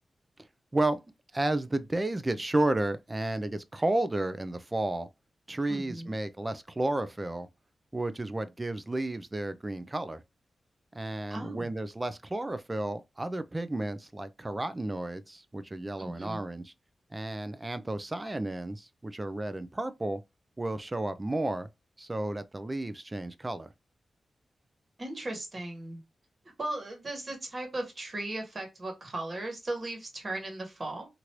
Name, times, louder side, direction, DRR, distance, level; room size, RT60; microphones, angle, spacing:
voice 1, 1.3-5.1 5.5-7.5 7.9-10.2 10.9-16.7 17.1-20.2 20.6-21.7 22.0-23.7, right 2 dB, 25° right, 0.4 m, -32 dB
voice 2, 5.7-6.1 11.3-11.7 16.0-16.4 25.0-26.0 26.6-31.1, right 2 dB, 45° right, 1.3 m, -37 dB
3.1 x 2.5 x 2.9 m
cardioid pair, 60°, 0 cm